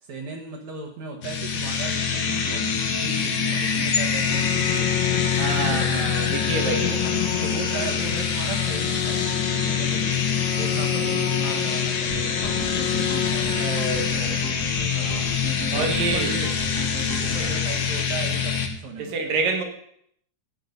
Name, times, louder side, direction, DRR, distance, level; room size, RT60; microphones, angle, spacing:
voice 1, 0.0-5.1 5.5-6.1 6.7-14.3 14.9-15.4 15.7-16.5 17.2-19.3, right 4 dB, 65° right, -1 dB, 2.6 m, -36 dB
sound 1, 1.2-18.7, left 6 dB, 50° left, 1.4 m, -25 dB
sound 2, 4.2-14.1, left 12 dB, 80° left, 1.7 m, -30 dB
voice 2, 5.4-7.2 13.6-14.4 14.7-15.2 15.7-16.3 19.0-19.6, right 4 dB, 85° right, 4 dB, 3.4 m, -28 dB
sound 3, 12.1-17.6, right 1 dB, 40° right, 1.6 m, -37 dB
14.5 x 8.9 x 5.3 m, 0.69 s
omnidirectional pair, 3.7 m